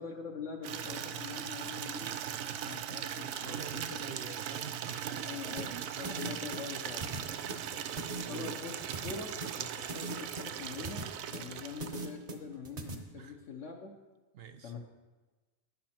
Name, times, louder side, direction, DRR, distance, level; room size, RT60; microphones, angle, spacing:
voice 1, 0.0-2.1 2.6-3.6 3.9-4.4 5.2-7.1 7.7-7.8 8.3-13.9 14.6-14.8, left 5 dB, 65° left, 1 dB, 1.2 m, -44 dB
Water tap faucet / Liquid, 0.6-12.2, right 9 dB, 90° right, 1.0 m, -39 dB
voice 2, 2.5-3.0 3.4-5.8 6.1-6.4 7.1-8.5 13.2-13.4 14.3-14.7, right 7 dB, 60° right, 9 dB, 0.7 m, -48 dB
sound 1, 5.6-12.9, right 2 dB, 35° right, 0.9 m, -41 dB
10.5 x 8.5 x 4.3 m, 1.2 s
omnidirectional pair, 1.4 m